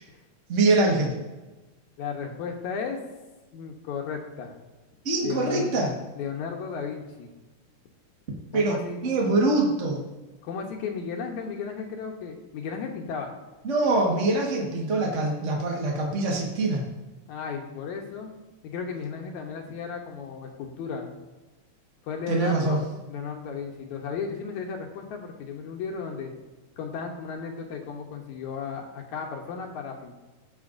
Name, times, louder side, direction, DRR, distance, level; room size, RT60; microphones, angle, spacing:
voice 1, 0.5-1.2 5.0-6.0 8.5-8.8 9.0-10.0 13.6-16.8 22.3-22.8, right 2 dB, 40° right, -2 dB, 1.1 m, -24 dB
voice 2, 2.0-3.0 3.5-4.6 5.2-5.7 6.2-7.3 8.5-9.0 10.4-13.3 17.3-18.3 18.6-21.1 22.0-26.3 26.8-30.1, left 6 dB, 75° left, 2 dB, 2.2 m, -34 dB
17.0 x 6.8 x 2.6 m, 1.1 s
omnidirectional pair, 3.5 m